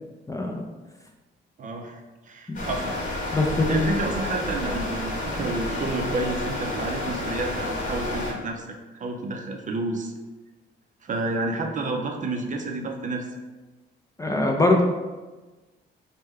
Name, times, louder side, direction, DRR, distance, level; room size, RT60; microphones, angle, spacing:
voice 1, 0.3-0.6 2.5-2.6 3.3-4.0 14.2-14.8, left 2 dB, 15° left, 1 dB, 0.4 m, -22 dB
voice 2, 1.6-2.9 3.7-8.7 9.0-10.1 11.0-13.3, right 2 dB, 40° right, 3 dB, 0.5 m, -30 dB
sound 1, 2.5-8.3, left 1 dB, 40° left, 1.0 m, -30 dB
3.1 x 2.2 x 3.5 m, 1.2 s
cardioid pair, 90°, 20 cm